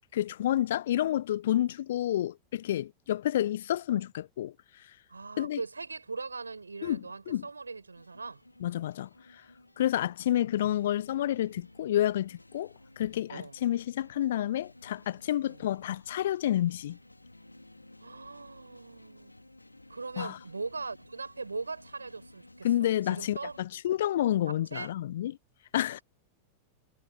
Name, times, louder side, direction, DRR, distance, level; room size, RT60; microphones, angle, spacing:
voice 1, 0.1-4.5 5.4-5.6 6.8-7.5 8.6-9.1 9.8-17.0 20.2-20.4 22.6-25.3 25.7-26.0, left 12 dB, 60° left, 1.1 m, -29 dB
voice 2, 5.1-8.4 10.3-10.5 13.3-13.6 15.4-15.7 18.0-19.3 19.9-23.8 24.5-24.9, right 4 dB, 80° right, 6.6 m, -40 dB
sound 1, 8.0-23.7, left 1 dB, 85° left, 3.8 m, -55 dB
figure-of-eight pair, 90°, 0 cm